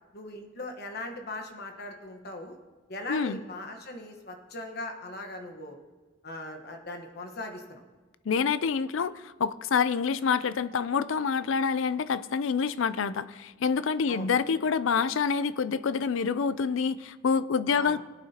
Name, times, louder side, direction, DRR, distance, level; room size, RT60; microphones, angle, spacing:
voice 1, 0.1-2.6 2.9-5.8 6.2-7.8 14.1-14.3 17.7-18.0, left 2 dB, 50° left, 4 dB, 1.3 m, -39 dB
voice 2, 8.3-18.0, left 6 dB, 70° left, 16 dB, 0.4 m, -27 dB
20.0 x 8.8 x 2.9 m, 1.3 s
head